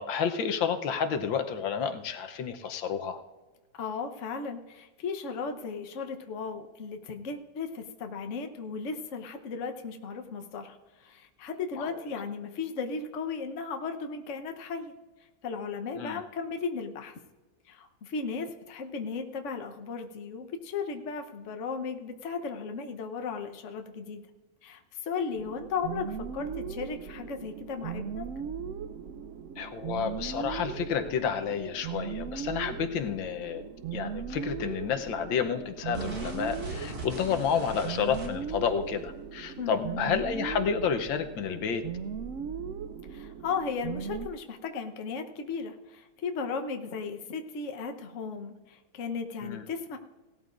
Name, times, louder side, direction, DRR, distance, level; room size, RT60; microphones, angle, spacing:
voice 1, 0.0-3.2 11.8-11.9 16.0-16.2 29.6-33.6 33.9-41.8 49.4-49.6, left 7 dB, 85° left, 7 dB, 1.6 m, -30 dB
voice 2, 3.8-14.9 15.4-17.2 17.7-24.2 24.6-28.3 39.6-40.0 43.1-50.0, left 5 dB, 50° left, 5 dB, 1.1 m, -36 dB
sound 1, 25.3-44.3, right 7 dB, 80° right, 0.7 m, -38 dB
sound 2, 35.9-38.6, right 2 dB, 50° right, 2.8 m, -39 dB
18.0 x 13.0 x 2.5 m, 1.2 s
omnidirectional pair, 2.1 m